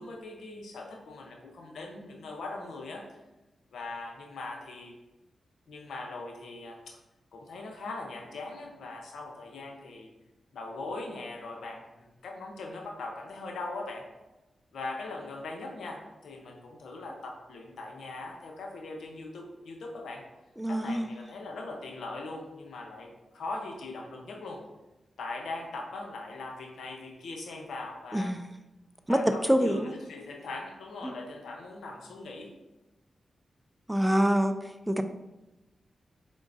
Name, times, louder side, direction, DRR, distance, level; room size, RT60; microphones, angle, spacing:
voice 1, 0.0-3.1 3.7-4.9 5.7-7.0 7.3-10.1 10.5-14.1 14.7-20.2 20.7-24.6 25.2-28.4 29.1-32.5, left 3 dB, 80° left, 1 dB, 0.7 m, -40 dB
voice 2, 20.6-21.1 28.1-28.4 29.1-29.9 31.0-31.1 33.9-34.6 34.9-35.0, equal, 10° right, 8 dB, 0.4 m, -25 dB
4.8 x 3.6 x 2.5 m, 1.0 s
cardioid pair, 45°, 0 cm